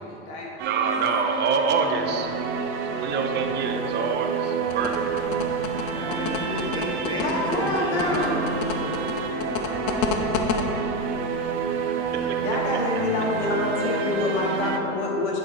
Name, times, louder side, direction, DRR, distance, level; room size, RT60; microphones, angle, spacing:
voice 1, 0.0-0.6 7.2-8.3 12.4-15.4, left 2 dB, 70° left, -2 dB, 1.5 m, -26 dB
voice 2, 0.6-2.3 2.9-5.2, right 5 dB, 30° right, 4 dB, 0.6 m, -26 dB
sound 1, 0.6-14.8, right 5 dB, 65° right, 0.7 m, -29 dB
sound 2, 4.7-10.6, left 7 dB, 50° left, 0.7 m, -29 dB
voice 3, 5.9-9.0 9.4-10.5, left 1 dB, 15° left, -2 dB, 0.7 m, -34 dB
7.7 x 6.9 x 2.6 m, 2.9 s
hypercardioid pair, 100°, 35 cm